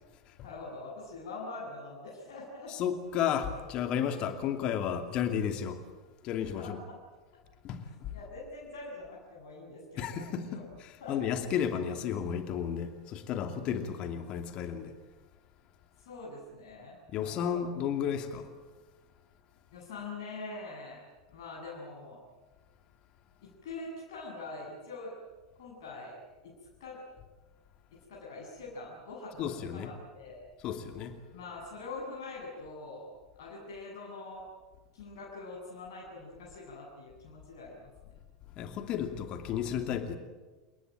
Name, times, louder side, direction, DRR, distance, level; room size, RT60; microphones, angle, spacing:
voice 1, 0.4-2.7 6.6-6.7 8.1-10.6 11.0-11.4 16.0-17.7 19.7-21.0 21.3-22.2 23.4-25.1 25.6-26.2 26.4-26.5 26.8-27.0 28.1-30.4 31.3-33.1 33.4-34.5 34.9-38.1, left 3 dB, 55° left, -3 dB, 7.8 m, -44 dB
voice 2, 2.7-5.8 6.2-6.8 7.6-8.1 10.0-14.9 17.1-18.5 29.4-29.9 30.6-31.2 38.6-40.2, left 8 dB, 40° left, 7 dB, 2.6 m, -33 dB
29.0 x 20.0 x 9.1 m, 1.3 s
figure-of-eight pair, 85°, 2 cm